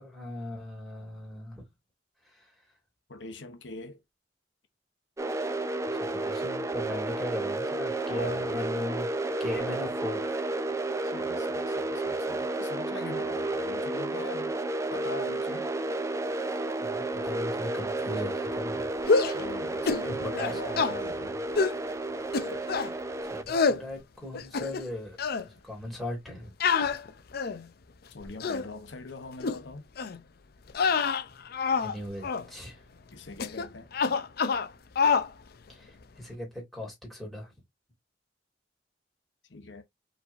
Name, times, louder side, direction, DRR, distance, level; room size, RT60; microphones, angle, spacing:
voice 1, 0.0-1.6 2.2-2.5 5.9-9.1 9.4-10.5 16.8-18.9 20.2-21.1 22.6-23.0 23.3-25.2 25.4-26.5 31.8-32.8 35.7-37.5, left 1 dB, ahead, 2.2 m, -38 dB
voice 2, 3.1-4.0 8.1-8.4 11.0-14.6 14.9-15.7 19.3-21.4 28.1-29.9 33.1-33.9 39.5-39.8, left 3 dB, 90° left, 0.9 m, -42 dB
sound 1, 5.2-23.4, right 2 dB, 15° right, 0.4 m, -32 dB
sound 2, 19.0-19.4 19.9-20.1 20.4-20.9 21.6-21.8 22.3-22.9 23.5-23.8 24.3-24.9 25.2-25.4 26.6-27.7 28.2-28.7 29.4-29.6 30.0-30.2 30.7-31.9 32.2-32.5 33.4-33.7 33.9-34.7 35.0-35.3, left 5 dB, 55° left, 0.5 m, -26 dB
4.8 x 3.3 x 2.6 m
head